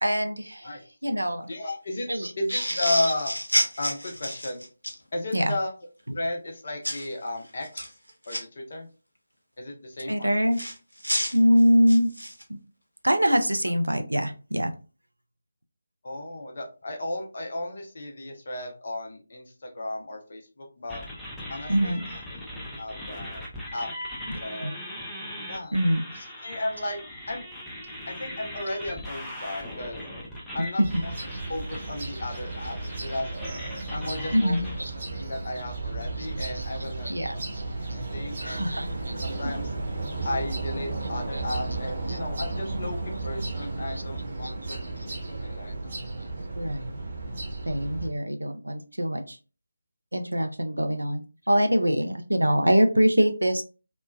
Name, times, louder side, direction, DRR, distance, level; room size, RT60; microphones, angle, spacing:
voice 1, 0.0-0.7 1.0-1.5 2.1-2.3 5.3-5.5 10.1-10.6 11.3-12.1 12.5-12.6 13.0-14.7 21.7-22.1 24.3-24.7 25.7-26.0 30.8-30.9 34.3-34.9 36.6-36.7 37.0-37.3 38.4-39.1 41.3-41.4 42.1-42.2 44.4-44.5 46.6-47.0 47.7-49.4 50.1-53.6, equal, 80° right, 7 dB, 0.4 m, -24 dB
voice 2, 1.5-2.1 2.4-3.3 3.8-4.6 5.1-5.7 6.1-7.9 8.3-8.9 9.6-10.4 16.0-21.0 21.5-22.0 22.3-23.4 23.7-23.9 24.4-24.7 25.5-25.7 26.1-27.0 27.3-27.5 28.1-30.0 30.5-31.1 31.5-33.3 33.9-34.6 35.1-37.4 37.8-38.6 39.2-39.7 40.2-45.8, left 1 dB, 45° left, 2 dB, 0.6 m, -34 dB
sound 1, 2.5-5.0 6.8-7.1 7.6-8.4 10.5-12.4, equal, 85° left, 0.7 m, -29 dB
sound 2, 20.9-34.8, equal, 5° left, 0.5 m, -40 dB
sound 3, 30.8-48.1, right 2 dB, 35° right, 0.9 m, -34 dB
3.1 x 2.1 x 2.2 m, 0.34 s
figure-of-eight pair, 155°, 0 cm